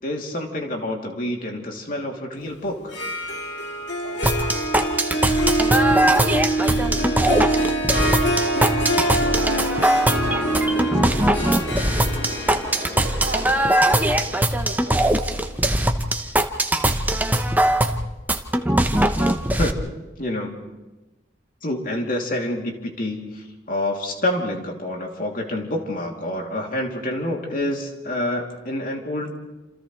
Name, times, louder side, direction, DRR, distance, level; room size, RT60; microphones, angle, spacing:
voice 1, 0.0-2.9 19.6-19.9 20.2-20.6 21.6-29.3, left 1 dB, 50° left, 1 dB, 3.1 m, -27 dB
Harp, 2.8-15.7, right 1 dB, 90° left, 2.3 m, -25 dB
voice 2, 4.0-5.2 5.7-6.9 7.8-9.0 9.4-12.3 12.7-15.4, right 2 dB, 65° right, 1 dB, 3.3 m, -38 dB
sound 1, 4.2-19.7, right 1 dB, 10° right, 1.0 m, -21 dB
sound 2, 9.1-14.2, equal, 10° left, 4.0 m, -37 dB
29.0 x 28.0 x 3.3 m, 1.1 s
head